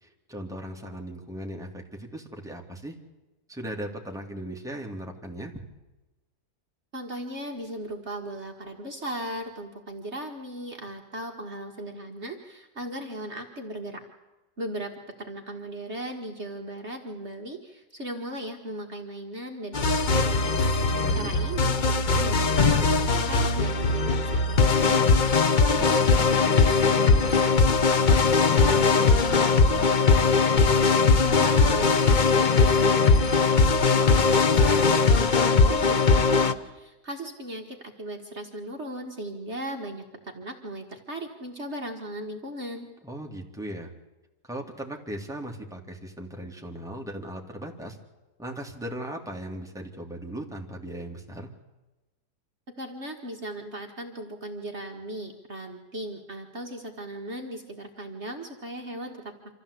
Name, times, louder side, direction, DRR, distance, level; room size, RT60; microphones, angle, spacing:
voice 1, 0.0-2.9 3.5-5.5 21.0-21.3 25.6-29.9 43.0-43.9 44.5-48.0 48.4-51.5, right 1 dB, ahead, 0 dB, 2.8 m, -38 dB
voice 2, 6.9-14.0 14.6-20.6 21.1-25.1 31.2-42.9 52.8-59.3, right 1 dB, 45° right, 2 dB, 2.1 m, -37 dB
sound 1, 19.7-36.5, left 4 dB, 40° left, 0.8 m, -20 dB
26.0 x 14.5 x 8.3 m, 1.1 s
omnidirectional pair, 1.7 m